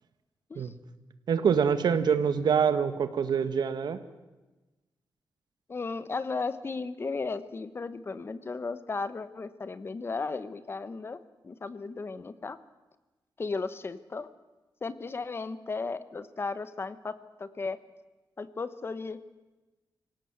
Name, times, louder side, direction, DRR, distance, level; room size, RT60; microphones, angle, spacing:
voice 1, 1.3-4.0, right 7 dB, 80° right, 11 dB, 1.6 m, -25 dB
voice 2, 5.7-11.2 11.4-12.6 13.4-14.3 14.8-17.8 18.4-19.2, left 4 dB, 35° left, 13 dB, 1.1 m, -35 dB
25.5 x 17.0 x 7.9 m, 1.2 s
wide cardioid pair, 145°, 7 cm